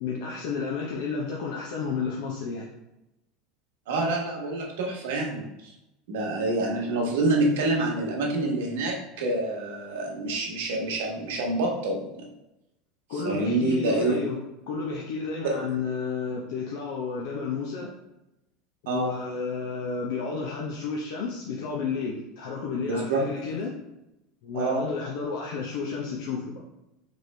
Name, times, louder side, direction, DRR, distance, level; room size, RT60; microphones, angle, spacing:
voice 1, 0.0-2.7 13.1-17.9 18.8-23.7 24.4-26.6, left 5 dB, 65° left, -2 dB, 0.7 m, -31 dB
voice 2, 3.9-5.7 6.1-12.3 13.2-14.2 15.4-15.6 18.9-19.1 22.8-23.3 24.5-24.8, right 2 dB, 85° right, 0 dB, 1.1 m, -27 dB
4.2 x 3.2 x 3.2 m, 0.91 s
supercardioid pair, 170°, 0 cm